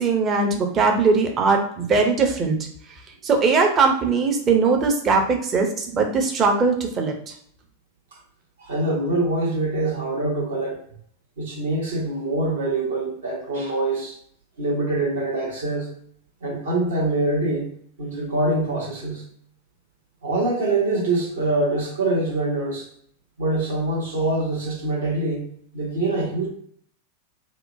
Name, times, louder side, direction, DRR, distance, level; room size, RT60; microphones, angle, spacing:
voice 1, 0.0-2.6 2.9-7.3, right 4 dB, 25° right, 3 dB, 0.6 m, -20 dB
voice 2, 8.6-10.8 11.4-14.2 14.6-15.9 16.4-17.7 18.0-19.2 20.2-22.9 23.4-25.5 25.7-26.5, right 2 dB, 65° right, -2 dB, 1.0 m, -24 dB
2.9 x 2.1 x 2.4 m, 0.64 s
figure-of-eight pair, 90°, 0 cm